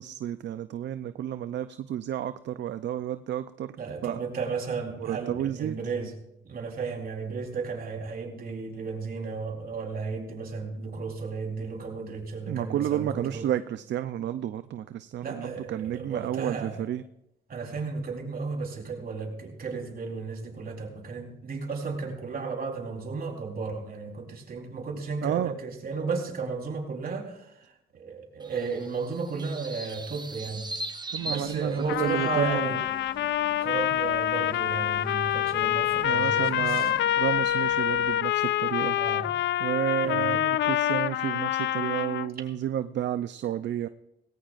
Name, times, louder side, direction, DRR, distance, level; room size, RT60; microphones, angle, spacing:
voice 1, 0.0-3.7 4.0-4.2 5.0-5.8 12.4-17.0 25.2-25.5 31.1-32.7 36.0-39.0 39.6-43.9, right 11 dB, 65° right, 12 dB, 0.6 m, -31 dB
voice 2, 3.8-6.1 6.4-13.4 15.2-16.8 17.5-30.7 31.2-32.8 33.6-36.9 38.9-39.3 40.0-40.3, right 4 dB, 50° right, 1 dB, 4.0 m, -34 dB
sound 1, 28.4-32.4, right 1 dB, 20° right, 1.0 m, -39 dB
sound 2, 31.2-38.2, left 3 dB, 25° left, 2.4 m, -49 dB
Trumpet, 31.9-42.3, left 12 dB, 70° left, 0.5 m, -26 dB
19.5 x 18.0 x 2.5 m, 0.85 s
cardioid pair, 90°, 20 cm